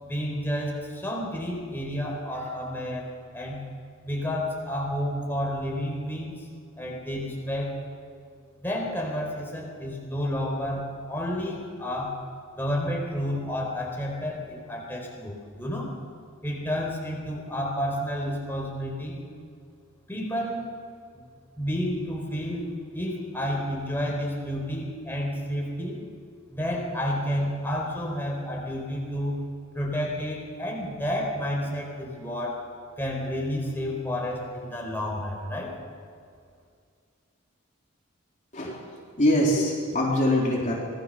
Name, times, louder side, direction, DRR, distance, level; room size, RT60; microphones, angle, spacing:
voice 1, 0.0-3.1 3.3-3.6 4.0-6.4 6.8-7.7 8.6-12.2 12.5-15.9 16.4-19.2 20.1-20.6 21.1-21.2 21.6-26.0 26.5-29.4 29.7-32.6 33.0-35.8, equal, 10° left, -2 dB, 4.6 m, -30 dB
voice 2, 39.2-40.7, left 1 dB, 35° left, -4 dB, 3.9 m, -23 dB
26.5 x 19.0 x 6.8 m, 2.2 s
head